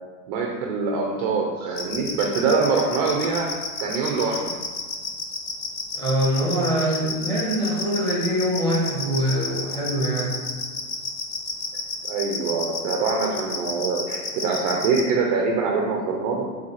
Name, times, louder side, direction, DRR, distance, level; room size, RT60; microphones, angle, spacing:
voice 1, 0.3-3.5 3.8-4.5 12.1-16.4, right 4 dB, 30° right, 0 dB, 0.5 m, -24 dB
sound 1, 1.8-15.0, left 4 dB, 25° left, 0.4 m, -30 dB
voice 2, 5.9-10.3, equal, 10° left, -6 dB, 1.4 m, -24 dB
5.3 x 3.8 x 5.5 m, 1.5 s
supercardioid pair, 175°, 41 cm